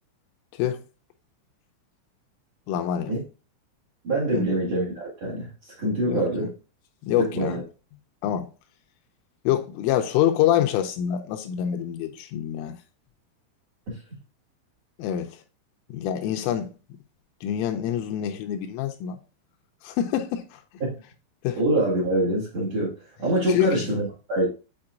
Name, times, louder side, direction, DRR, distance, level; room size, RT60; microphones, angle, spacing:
voice 1, 2.7-3.1 4.3-4.6 6.1-6.2 7.0-7.6 8.2-8.5 9.5-12.8 15.0-15.3 15.9-16.7 17.4-19.2 19.8-20.6 21.4-21.6 23.5-23.9, left 10 dB, 85° left, 3.1 m, -26 dB
voice 2, 4.0-6.5 7.2-7.6 13.9-14.0 20.8-20.9 21.6-22.9 23.2-24.5, right 1 dB, 50° right, 1.9 m, -25 dB
8.7 x 4.5 x 2.4 m
omnidirectional pair, 5.9 m